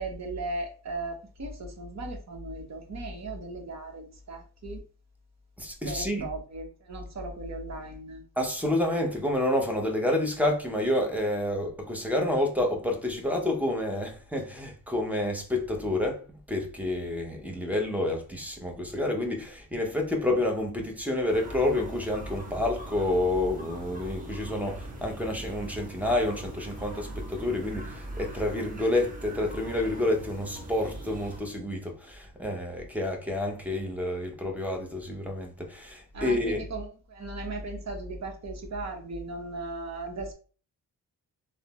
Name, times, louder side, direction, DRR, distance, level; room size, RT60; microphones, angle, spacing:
voice 1, 0.0-4.8 5.8-8.2 36.1-40.3, right 2 dB, 45° right, 0.9 m, -37 dB
voice 2, 5.6-6.3 8.4-36.6, left 1 dB, 5° right, 0.7 m, -29 dB
sound 1, 21.3-31.4, right 1 dB, 20° right, 1.1 m, -40 dB
3.2 x 2.0 x 2.8 m
cardioid pair, 85°, 37 cm